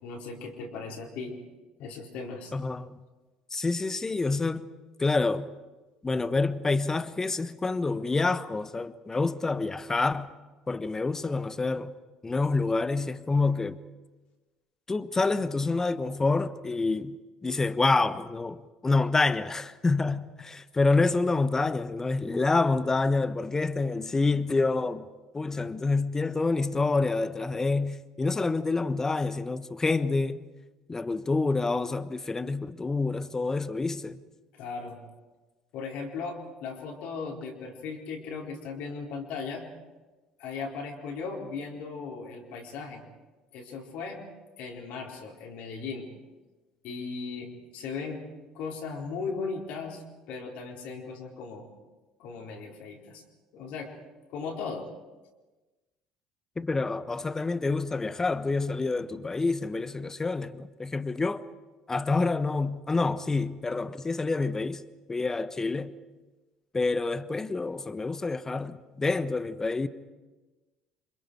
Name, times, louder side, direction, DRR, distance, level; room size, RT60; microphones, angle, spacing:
voice 1, 0.0-1.4 1.8-2.5 34.5-35.0 35.7-39.6 40.4-43.0 43.5-44.2 44.6-46.1 46.8-48.2 48.5-50.0 50.3-51.7 52.2-53.2 53.5-54.0 54.3-54.9, left 4 dB, 55° left, 4.2 m, -37 dB
voice 2, 2.5-2.9 3.5-4.7 5.0-5.5 6.0-10.3 10.7-11.9 12.2-13.8 14.9-17.2 17.4-25.1 25.3-30.4 30.9-34.2 56.6-61.4 61.9-64.8 65.1-65.9 66.7-69.9, left 3 dB, 20° left, 1.2 m, -27 dB
29.5 x 26.0 x 4.8 m
figure-of-eight pair, 60°, 3 cm